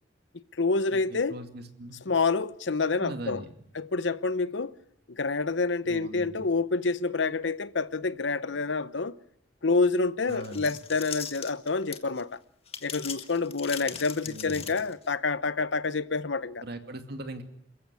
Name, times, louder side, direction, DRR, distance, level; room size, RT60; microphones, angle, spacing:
voice 1, 0.3-1.4 2.1-3.5 3.7-4.7 5.1-9.1 9.6-12.4 12.8-16.6, left 4 dB, 70° left, 0.9 m, -28 dB
voice 2, 0.9-2.0 3.0-3.5 5.9-6.5 10.3-10.8 13.9-14.0 14.2-14.7 16.6-17.4, right 1 dB, 60° right, 2.4 m, -40 dB
sound 1, 10.3-12.2 12.7-15.1, left 7 dB, 30° left, 1.8 m, -39 dB
28.0 x 15.0 x 9.8 m
head